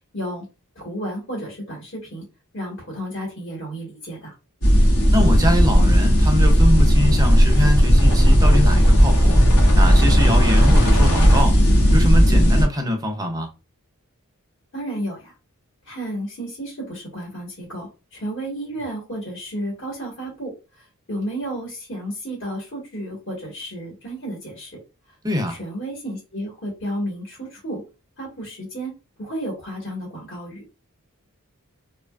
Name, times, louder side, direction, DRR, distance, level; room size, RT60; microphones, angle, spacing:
voice 1, 0.1-0.4 0.7-2.2 2.5-4.3 14.7-15.3 15.8-24.8 25.5-27.8 28.2-28.9 29.2-30.6, right 1 dB, 55° left, 1.3 m, -32 dB
sound 1, 4.6-12.6, equal, 90° left, 1.1 m, -14 dB
voice 2, 5.1-9.4 9.7-11.6 11.9-13.5 25.2-25.6, left 1 dB, 15° right, 0.5 m, -23 dB
2.7 x 2.4 x 2.3 m
head